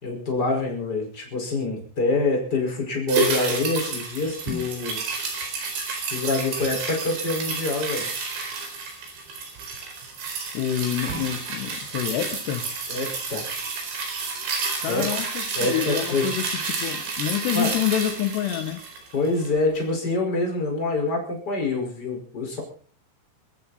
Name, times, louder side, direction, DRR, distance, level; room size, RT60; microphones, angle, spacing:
voice 1, 0.0-5.0 6.1-8.1 12.9-13.5 14.9-15.0 15.6-16.3 17.5-17.7 19.1-22.6, left 2 dB, 20° left, 1 dB, 5.3 m, -26 dB
sound 1, 3.1-19.6 19.9-20.0, right 4 dB, 85° right, 6.6 m, -30 dB
voice 2, 10.5-12.7 14.8-18.8, left 11 dB, 75° left, 7 dB, 3.2 m, -27 dB
23.0 x 14.0 x 4.2 m, 0.43 s
omnidirectional pair, 5.1 m